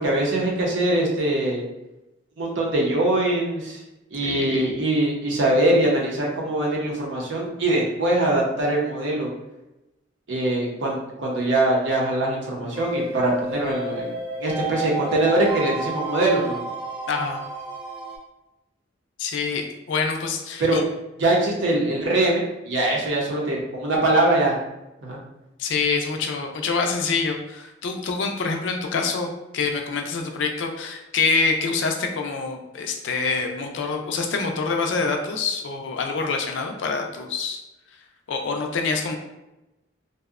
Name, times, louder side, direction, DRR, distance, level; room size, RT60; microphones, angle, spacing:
voice 1, 0.0-1.6 2.4-3.8 4.1-9.3 10.3-14.1 14.4-16.6 20.6-20.8 21.2-24.6 25.0-25.2, right 1 dB, 70° right, -2 dB, 0.6 m, -22 dB
voice 2, 4.2-4.8 17.1-17.4 19.2-20.8 25.6-37.6 38.3-39.2, left 4 dB, 70° left, 3 dB, 0.4 m, -26 dB
sound 1, 12.8-18.2, right 2 dB, 10° right, 0.9 m, -31 dB
2.6 x 2.1 x 2.4 m, 0.97 s
head